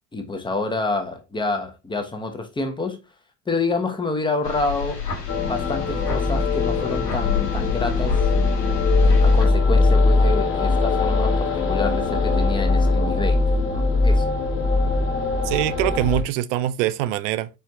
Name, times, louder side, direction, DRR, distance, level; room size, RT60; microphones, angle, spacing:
voice 1, 0.1-3.0 3.5-5.0 5.4-8.2 9.0-14.2, left 3 dB, 10° left, 1.0 m, -28 dB
sound 1, 4.4-9.5, left 8 dB, 85° left, 1.2 m, -29 dB
sound 2, 5.3-16.2, left 3 dB, 25° left, 1.5 m, -20 dB
voice 2, 15.4-17.5, right 13 dB, 50° right, 0.5 m, -23 dB
4.5 x 4.3 x 2.7 m
figure-of-eight pair, 70°, 47 cm